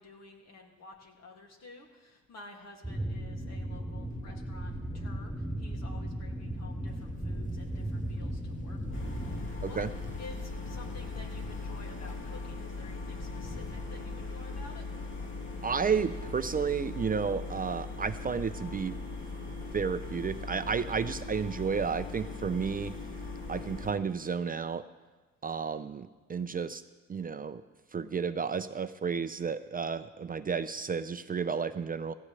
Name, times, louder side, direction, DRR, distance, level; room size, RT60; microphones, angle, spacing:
voice 1, 0.0-5.3 5.6-9.9 10.2-14.9, left 3 dB, 60° left, 2 dB, 2.3 m, -51 dB
sound 1, 2.8-9.4, right 1 dB, 5° left, 3.0 m, -36 dB
sound 2, 4.0-13.8, left 4 dB, 25° left, 1.0 m, -47 dB
sound 3, 8.9-23.9, left 3 dB, 45° left, 2.8 m, -39 dB
voice 2, 15.6-19.0 19.7-22.9 23.5-24.8 25.4-26.8 27.1-27.6 27.9-32.2, right 6 dB, 30° right, 11 dB, 0.5 m, -32 dB
16.5 x 15.0 x 3.2 m, 1.2 s
cardioid pair, 90°, 30 cm